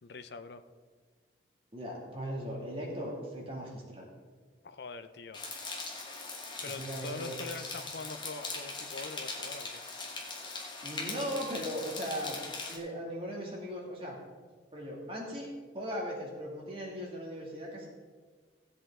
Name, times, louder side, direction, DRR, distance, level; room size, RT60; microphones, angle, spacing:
voice 1, 0.0-0.6 4.6-5.4 6.6-9.8, left 3 dB, 65° left, 10 dB, 0.6 m, -43 dB
voice 2, 1.7-4.1 6.7-7.3 10.8-12.4 12.7-14.1 14.7-17.9, equal, 30° right, -3 dB, 2.2 m, -38 dB
sound 1, 5.3-12.8, left 3 dB, 25° left, 1.2 m, -40 dB
15.5 x 8.0 x 3.7 m, 1.5 s
head